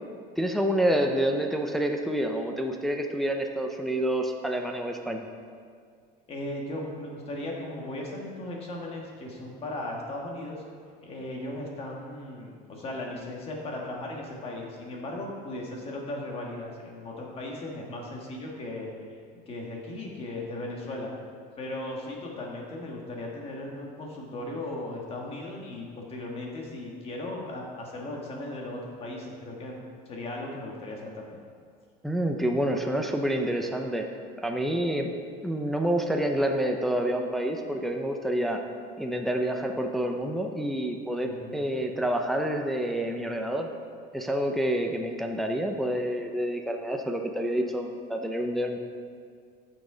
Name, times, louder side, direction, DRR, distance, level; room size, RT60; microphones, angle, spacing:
voice 1, 0.4-5.3 32.0-34.1 34.4-35.1 35.4-38.6 39.0-43.7 44.1-48.8, right 1 dB, ahead, 2 dB, 0.4 m, -28 dB
voice 2, 6.3-10.6 11.0-18.9 19.5-21.1 21.6-29.8 30.1-31.4 41.2-42.0, left 1 dB, 30° left, -1 dB, 1.5 m, -37 dB
14.0 x 6.1 x 3.8 m, 2.1 s
cardioid pair, 165°, 20 cm